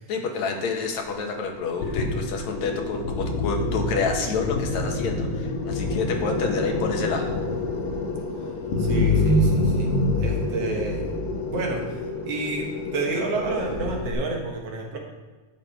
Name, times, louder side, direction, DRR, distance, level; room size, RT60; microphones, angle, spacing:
voice 1, 0.1-7.3, left 4 dB, 70° left, 3 dB, 2.3 m, -28 dB
sound 1, 1.8-14.1, left 2 dB, 85° left, 2.9 m, -26 dB
voice 2, 8.8-9.9 10.2-11.1 11.5-15.0, right 3 dB, 65° right, 1 dB, 1.9 m, -30 dB
12.0 x 7.0 x 4.5 m, 1.3 s
omnidirectional pair, 3.5 m